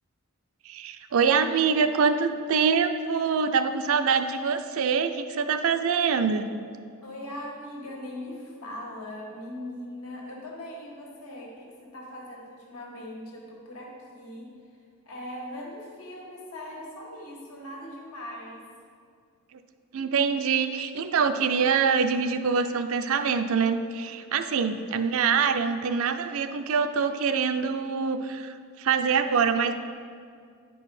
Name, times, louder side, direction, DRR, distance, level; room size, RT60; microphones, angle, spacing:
voice 1, 0.7-6.5 19.9-29.7, right 6 dB, 70° right, 9 dB, 0.4 m, -25 dB
voice 2, 7.0-14.5 15.1-18.7, left 1 dB, 90° left, -2 dB, 1.7 m, -40 dB
9.4 x 4.7 x 4.8 m, 2.2 s
head